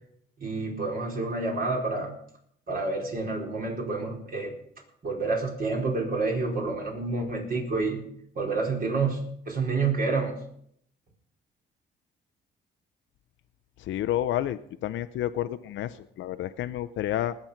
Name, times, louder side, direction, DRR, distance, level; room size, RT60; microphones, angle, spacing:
voice 1, 0.4-2.1 2.7-4.5 5.0-8.0 8.3-9.2 9.5-10.4, right 3 dB, 45° right, 0 dB, 4.6 m, -28 dB
voice 2, 13.8-17.4, left 12 dB, 75° left, 10 dB, 0.6 m, -30 dB
19.5 x 7.9 x 5.8 m, 0.68 s
cardioid pair, 90°, 20 cm